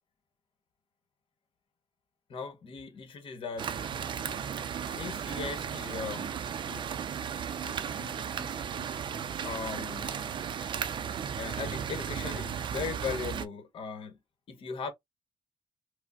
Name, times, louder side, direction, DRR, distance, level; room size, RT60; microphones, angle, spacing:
voice 1, 2.3-3.7 4.3-4.4 4.9-6.4 6.7-6.9 9.4-10.2 11.4-14.2 14.5-14.9, left 5 dB, 55° left, 1.2 m, -38 dB
sound 1, 3.6-13.5, right 8 dB, 50° right, 0.5 m, -35 dB
sound 2, 7.6-11.5 11.7-11.8 12.1-12.2, left 2 dB, 5° right, 1.0 m, -53 dB
4.9 x 2.1 x 2.5 m
cardioid pair, 145°, 10 cm